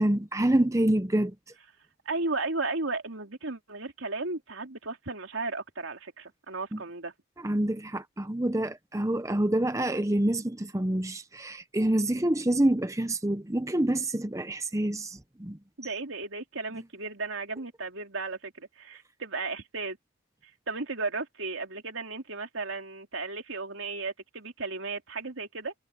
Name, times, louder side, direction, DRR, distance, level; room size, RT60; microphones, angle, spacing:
voice 1, 0.0-1.3 6.7-6.8 7.4-15.6, right 1 dB, 15° right, 0.7 m, -27 dB
voice 2, 2.0-7.1 15.8-20.0 20.7-25.7, right 3 dB, 90° right, 3.2 m, -35 dB
head